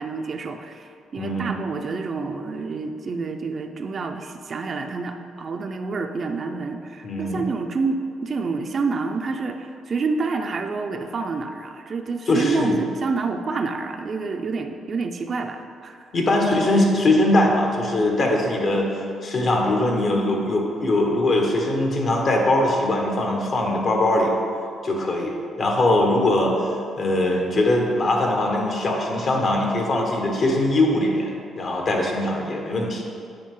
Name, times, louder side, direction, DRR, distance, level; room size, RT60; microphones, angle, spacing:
voice 1, 0.0-16.1, right 4 dB, 45° right, 5 dB, 0.5 m, -28 dB
voice 2, 1.2-1.6 7.0-7.5 12.3-12.8 16.1-24.3 24.8-25.3 25.6-26.5 27.0-33.0, left 1 dB, 50° left, 0 dB, 1.3 m, -21 dB
8.6 x 5.0 x 3.8 m, 2.4 s
cardioid pair, 90°, 0 cm